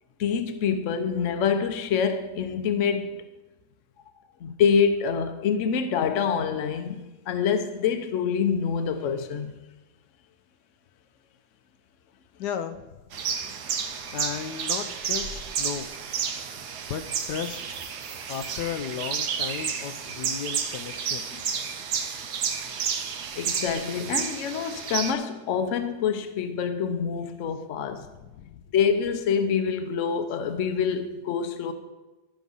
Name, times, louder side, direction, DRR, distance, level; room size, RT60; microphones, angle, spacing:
voice 1, 0.2-3.2 4.4-7.0 7.3-9.5 21.3-21.5 23.4-28.1 28.7-31.7, left 6 dB, 55° left, 1.0 m, -26 dB
voice 2, 12.4-13.0 14.1-15.9 16.9-17.0 17.3-17.9 18.3-21.2 28.2-28.6, left 8 dB, 85° left, 1.3 m, -34 dB
sound 1, 13.1-25.1, right 7 dB, 80° right, 1.4 m, -31 dB
13.0 x 6.2 x 5.4 m
omnidirectional pair, 1.7 m